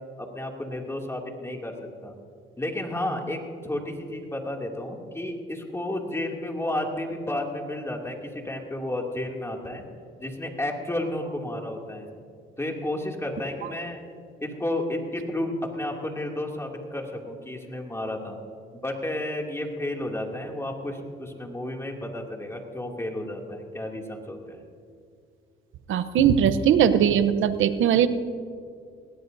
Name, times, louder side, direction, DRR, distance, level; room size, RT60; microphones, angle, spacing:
voice 1, 0.2-1.7 2.0-2.1 2.6-9.8 10.2-12.1 12.6-14.0 14.4-18.4 18.7-24.6, left 1 dB, 10° left, 1 dB, 2.6 m, -32 dB
voice 2, 25.9-28.1, right 8 dB, 70° right, 12 dB, 0.9 m, -20 dB
21.0 x 17.0 x 2.7 m, 2.4 s
cardioid pair, 85°, 21 cm